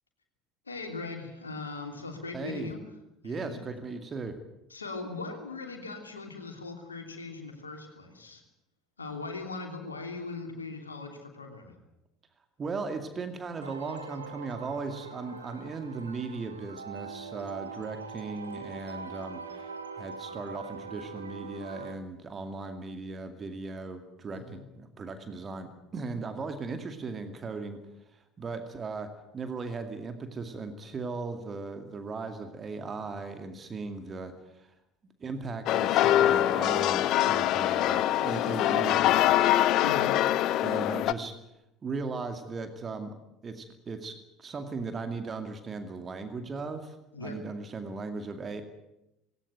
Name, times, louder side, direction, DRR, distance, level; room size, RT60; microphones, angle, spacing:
voice 1, 0.6-2.8 3.2-3.7 4.7-8.4 9.0-11.8 24.3-24.6 39.8-40.2 47.1-47.4, left 3 dB, 80° left, 4 dB, 3.0 m, -39 dB
voice 2, 2.3-2.7 3.2-4.4 12.6-27.8 28.1-34.7 35.2-39.5 40.6-41.3 41.8-43.2 43.4-48.6, right 4 dB, 30° right, 8 dB, 2.3 m, -37 dB
sound 1, 13.6-22.0, right 5 dB, 80° right, 1.6 m, -43 dB
sound 2, 35.7-41.1, left 13 dB, 50° left, 0.8 m, -24 dB
18.5 x 18.0 x 9.3 m, 0.89 s
figure-of-eight pair, 65°, 0 cm